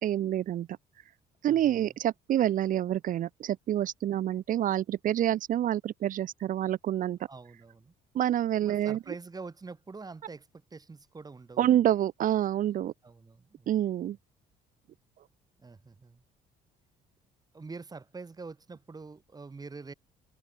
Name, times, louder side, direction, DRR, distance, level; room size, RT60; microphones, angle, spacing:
voice 1, 0.0-0.7 1.4-7.2 8.1-9.0 11.6-12.9 13.7-14.2, right 11 dB, 50° right, 0.7 m, -27 dB
voice 2, 1.4-1.9 7.3-7.9 8.6-11.8 13.0-13.7 15.6-16.2 17.5-19.9, right 4 dB, 20° right, 5.9 m, -45 dB
cardioid pair, 110°, 17 cm